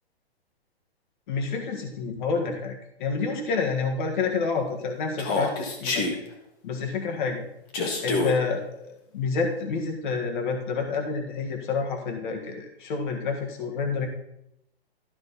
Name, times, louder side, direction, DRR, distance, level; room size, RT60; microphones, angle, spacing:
voice 1, 1.3-6.1 6.6-7.4 8.0-14.1, left 4 dB, 50° left, 3 dB, 1.8 m, -28 dB
Human voice, 5.2-6.2 7.7-8.4, left 3 dB, 30° left, 1.6 m, -26 dB
13.0 x 5.3 x 4.2 m, 0.80 s
figure-of-eight pair, 130°, 32 cm